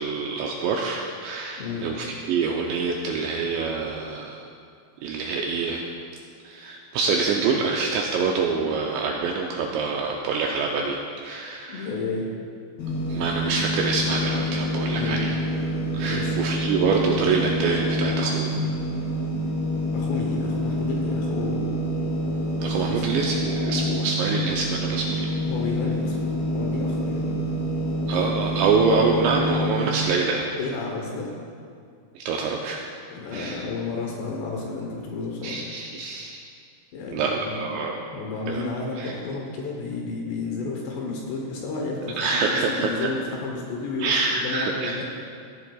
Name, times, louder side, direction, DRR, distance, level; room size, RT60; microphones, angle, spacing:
voice 1, 0.0-4.5 5.0-5.8 6.4-11.9 13.1-15.4 15.9-18.5 22.6-25.3 28.1-30.5 32.2-32.8 33.3-33.6 35.4-36.4 37.1-38.0 38.5-38.6 39.0-39.1 42.2-43.1 44.0-45.0, right 4 dB, 85° right, 0 dB, 2.6 m, -26 dB
voice 2, 1.6-1.9 11.7-12.3 14.9-15.2 16.0-16.4 19.7-21.8 22.8-23.0 25.5-26.2 26.5-27.4 30.6-31.3 33.1-35.6 36.9-37.8 38.1-45.0, left 3 dB, 75° left, -1 dB, 2.8 m, -31 dB
sound 1, 12.8-30.0, equal, 55° left, 4.4 m, -27 dB
16.0 x 10.5 x 2.3 m, 2.3 s
omnidirectional pair, 5.7 m